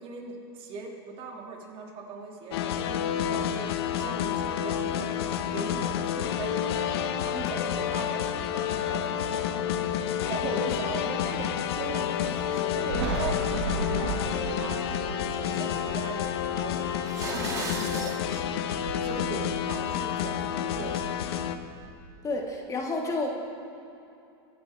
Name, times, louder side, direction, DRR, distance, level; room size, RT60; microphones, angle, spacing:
voice 1, 0.0-21.2, right 4 dB, 40° right, 0 dB, 2.5 m, -40 dB
sound 1, 2.5-21.6, left 9 dB, 70° left, 0.9 m, -29 dB
Thunder, 12.9-18.3 18.7-20.1 20.4-22.1, right 4 dB, 70° right, 1.9 m, -37 dB
sound 2, 16.9-18.2, right 3 dB, 25° right, 2.1 m, -35 dB
voice 2, 22.2-23.3, left 2 dB, 25° left, 1 dB, 1.9 m, -30 dB
23.5 x 10.5 x 3.5 m, 2.8 s
hypercardioid pair, 115°, 14 cm